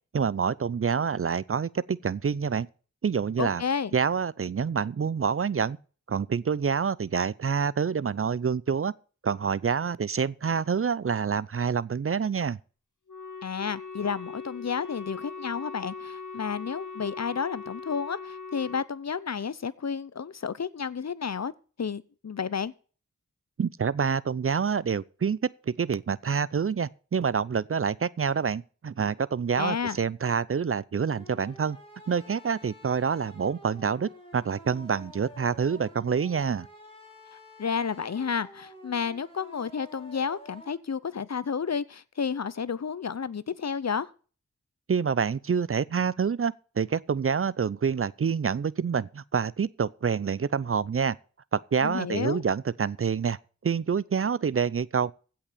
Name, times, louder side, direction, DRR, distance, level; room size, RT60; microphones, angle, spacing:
voice 1, 0.1-2.7 3.0-3.6 3.9-5.8 6.1-8.9 9.2-12.6 23.6-25.4 25.7-31.8 32.1-36.7 44.9-51.2 51.5-55.1, right 6 dB, 50° right, 0.5 m, -27 dB
voice 2, 3.4-3.9 13.4-21.5 21.8-22.7 29.6-30.0 37.6-44.1 51.8-52.4, left 6 dB, 60° left, 0.7 m, -31 dB
Wind instrument woodwind instrument, 13.1-18.9, left 4 dB, 85° left, 2.3 m, -40 dB
sound 1, 31.1-40.7, left 1 dB, 20° left, 3.4 m, -49 dB
16.0 x 5.8 x 6.7 m
wide cardioid pair, 70°, 30 cm